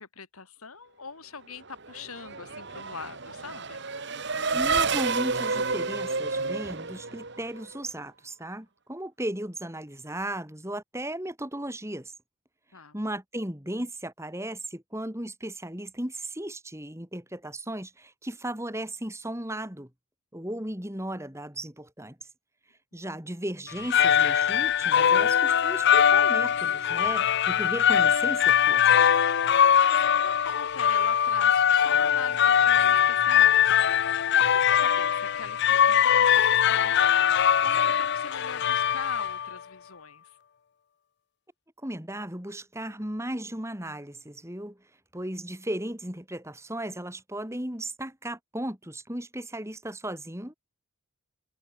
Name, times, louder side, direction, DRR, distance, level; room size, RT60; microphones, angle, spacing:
voice 1, 0.0-3.9 12.7-12.9 29.8-40.4, left 5 dB, 80° left, 2.5 m, -43 dB
Race car auto racing / Accelerating revving vroom, 1.7-7.8, right 4 dB, 50° right, 2.2 m, -30 dB
voice 2, 4.5-12.1 12.9-19.9 20.3-22.2 22.9-29.1 41.8-44.8 45.1-50.5, right 1 dB, 15° right, 3.6 m, -36 dB
sound 1, 23.7-39.6, left 8 dB, 50° left, 0.4 m, -22 dB
head